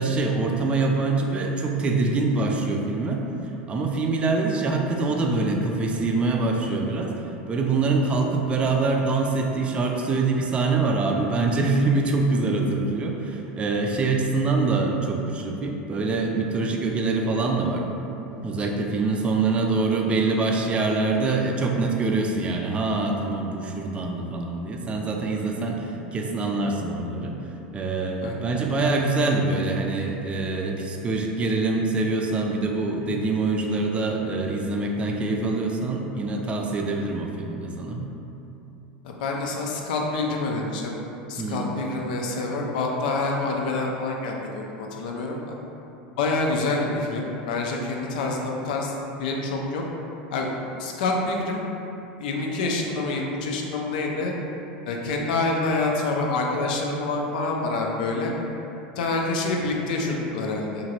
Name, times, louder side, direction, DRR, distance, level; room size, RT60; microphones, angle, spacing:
voice 1, 0.0-17.9 18.4-27.4 27.7-38.0 41.4-41.7, right 3 dB, 25° right, 1 dB, 0.3 m, -24 dB
voice 2, 39.0-40.9 41.3-45.4 46.2-48.9 49.2-49.8 50.3-50.5 50.8-51.7 52.2-54.3 54.9-58.3 59.0-60.9, left 3 dB, 80° left, 0 dB, 0.4 m, -27 dB
2.9 x 2.5 x 2.8 m, 2.9 s
supercardioid pair, 110°, 5 cm